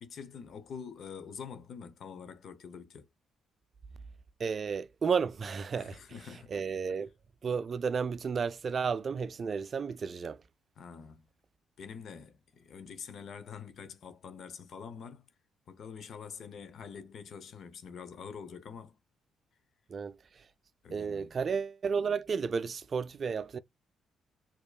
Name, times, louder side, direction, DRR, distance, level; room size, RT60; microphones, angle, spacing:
voice 1, 0.0-3.1 5.7-6.5 10.8-11.3 11.8-15.2 15.7-19.0 20.8-21.3, left 6 dB, 60° left, 0.8 m, -46 dB
voice 2, 4.4-7.1 7.4-10.4 19.9-20.5 20.9-23.6, right 6 dB, 45° right, 0.3 m, -33 dB
4.7 x 2.9 x 2.3 m
cardioid pair, 90°, 0 cm